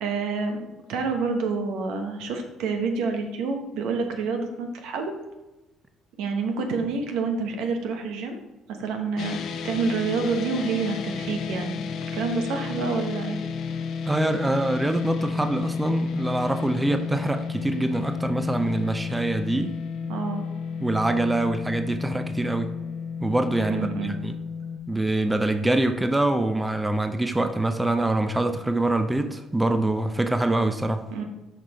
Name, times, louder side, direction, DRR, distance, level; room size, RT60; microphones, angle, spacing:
voice 1, 0.0-5.1 6.2-8.4 8.7-11.7 12.1-13.4 20.1-20.5 23.7-24.1 31.1-31.2, right 4 dB, 75° right, 4 dB, 0.9 m, -28 dB
sound 1, 9.2-24.8, left 6 dB, 65° left, 0.5 m, -32 dB
voice 2, 14.1-19.7 20.0-20.1 20.8-22.7 23.2-24.4 24.9-31.0, right 2 dB, 15° right, 8 dB, 0.5 m, -25 dB
5.9 x 4.9 x 4.1 m, 1.1 s
hypercardioid pair, 65°, 0 cm